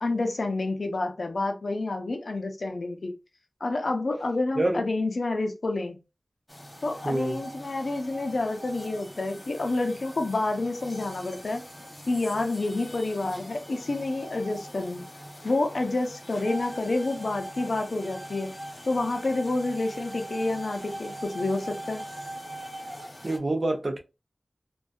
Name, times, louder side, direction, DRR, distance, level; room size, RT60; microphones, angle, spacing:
voice 1, 0.0-3.1 3.6-6.0 6.8-11.6 12.1-15.0 15.4-18.5 18.9-22.0, left 2 dB, 75° left, 0.5 m, -29 dB
sound 1, 6.5-23.4, right 1 dB, 25° left, 0.6 m, -42 dB
voice 2, 7.0-7.4 23.2-24.0, right 2 dB, 50° right, 0.6 m, -26 dB
2.6 x 2.2 x 2.3 m
wide cardioid pair, 70°, 0 cm